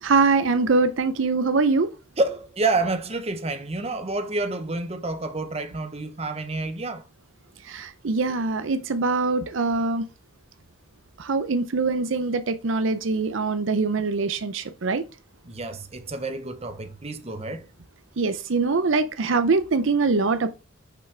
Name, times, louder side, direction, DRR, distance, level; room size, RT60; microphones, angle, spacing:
voice 1, 0.0-1.9 7.7-10.0 11.2-15.0 18.2-20.5, right 4 dB, 70° right, 0.6 m, -23 dB
voice 2, 2.2-7.0 15.4-17.7, right 2 dB, 30° right, 0.8 m, -28 dB
6.1 x 5.5 x 3.3 m
head